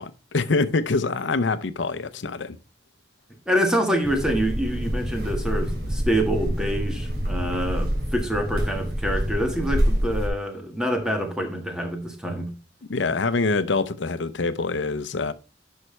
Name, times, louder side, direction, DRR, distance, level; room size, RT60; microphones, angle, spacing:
voice 1, 0.0-2.6 12.9-15.3, left 3 dB, 90° left, 0.7 m, -25 dB
voice 2, 3.5-12.5, equal, 5° right, 1.5 m, -26 dB
sound 1, 4.0-10.3, equal, 55° right, 2.7 m, -26 dB
11.0 x 5.6 x 3.2 m
head